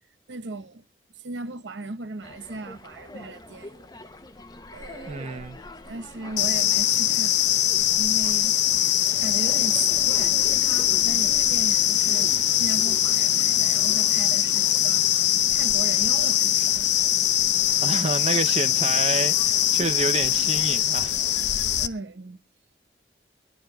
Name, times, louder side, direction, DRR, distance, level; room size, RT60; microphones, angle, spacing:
voice 1, 0.3-0.8 1.1-3.9 4.7-5.5 5.9-8.5 9.2-15.0 15.5-16.9 21.8-22.4, right 3 dB, 80° right, 0.9 m, -37 dB
sound 1, 2.2-21.9, left 2 dB, 25° left, 0.7 m, -46 dB
voice 2, 5.1-5.6 17.8-21.5, right 4 dB, 35° right, 0.5 m, -29 dB
sound 2, 6.4-21.9, left 12 dB, 75° left, 0.7 m, -22 dB
sound 3, 9.0-15.0, right 1 dB, 20° right, 1.1 m, -46 dB
24.0 x 11.5 x 2.2 m
head